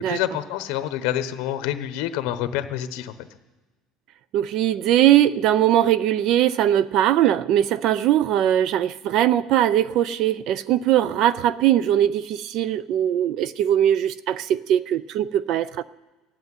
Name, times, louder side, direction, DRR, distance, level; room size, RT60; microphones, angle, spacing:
voice 1, 0.0-3.1, left 12 dB, 65° left, 10 dB, 1.0 m, -27 dB
voice 2, 4.3-15.8, right 11 dB, 45° right, 18 dB, 0.4 m, -20 dB
16.0 x 8.0 x 9.6 m, 1.2 s
cardioid pair, 165°, 0 cm